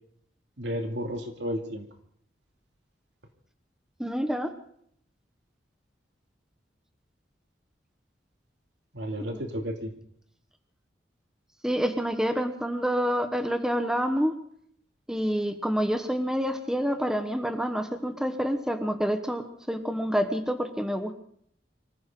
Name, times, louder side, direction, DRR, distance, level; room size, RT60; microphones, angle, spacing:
voice 1, 0.6-1.8 8.9-9.9, equal, 90° right, 3 dB, 2.7 m, -32 dB
voice 2, 4.0-4.5 9.2-9.4 11.6-14.3 15.1-21.1, equal, 5° right, 7 dB, 1.3 m, -28 dB
24.5 x 15.0 x 3.9 m, 0.65 s
head